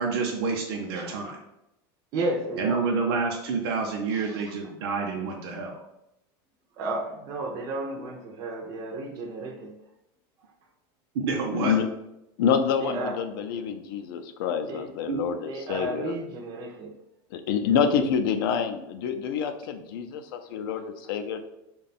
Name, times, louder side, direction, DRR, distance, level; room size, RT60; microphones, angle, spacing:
voice 1, 0.0-1.4 2.6-5.8 11.1-11.8 15.1-15.2, right 4 dB, 85° right, 0 dB, 0.6 m, -28 dB
voice 2, 2.1-3.0 4.1-4.5 6.8-9.8 12.8-13.2 14.7-14.9 15.5-17.0, right 2 dB, 30° right, 0 dB, 0.4 m, -33 dB
voice 3, 11.5-11.9 12.4-16.2 17.3-21.4, left 7 dB, 65° left, 7 dB, 0.4 m, -27 dB
3.6 x 2.2 x 4.0 m, 0.87 s
supercardioid pair, 180°, 13 cm